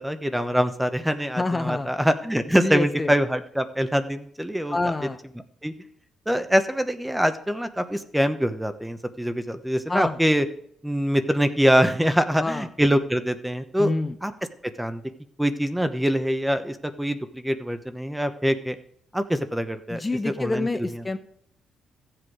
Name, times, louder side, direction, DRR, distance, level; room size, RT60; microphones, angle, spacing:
voice 1, 0.0-4.9 5.6-5.7 6.3-10.4 10.8-13.9 14.2-14.3 14.8-15.0 15.4-18.7 19.1-20.7, equal, 5° right, 9 dB, 0.9 m, -24 dB
voice 2, 1.4-1.9 2.5-3.1 4.7-5.2 9.9-10.2 12.4-12.7 13.8-14.2 19.9-21.2, left 2 dB, 20° left, 7 dB, 0.7 m, -27 dB
14.5 x 7.8 x 4.8 m, 0.67 s
cardioid pair, 90°, 0 cm